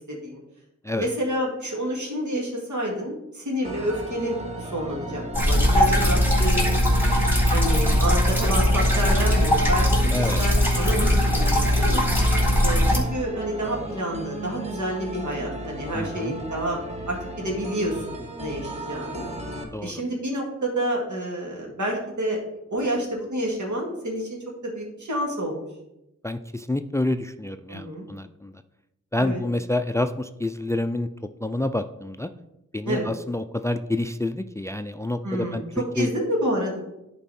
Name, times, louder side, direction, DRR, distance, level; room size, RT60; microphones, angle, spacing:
voice 1, 0.1-0.4 1.0-6.8 7.5-11.2 11.7-12.0 12.6-16.8 17.1-19.3 19.8-22.4 22.7-24.4 24.6-25.7 27.7-28.1 29.2-29.4 32.9-33.1 35.2-35.7 35.9-36.8, equal, 80° right, -1 dB, 2.2 m, -29 dB
sound 1, 3.6-19.6, right 1 dB, 20° right, 1.3 m, -36 dB
sound 2, 5.3-13.0, equal, 5° right, 3.1 m, -20 dB
voice 2, 10.1-10.4 15.9-16.4 19.7-19.9 26.2-28.5 29.1-31.1 31.4-32.3 32.7-35.6 36.0-36.1, left 1 dB, 10° left, 10 dB, 0.3 m, -28 dB
10.5 x 4.7 x 4.2 m, 0.89 s
wide cardioid pair, 70°, 29 cm